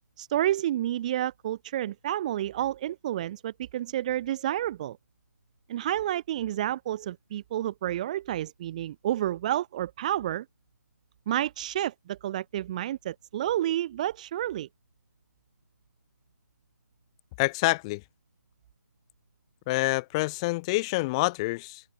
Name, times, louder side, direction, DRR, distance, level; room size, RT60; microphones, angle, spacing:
voice 1, 0.2-5.0 5.7-10.4 11.3-14.7, right 12 dB, 25° right, 1.5 m, -30 dB
voice 2, 17.4-18.0 19.7-21.8, left 23 dB, 15° left, 3.0 m, -27 dB
figure-of-eight pair, 155°, 10 cm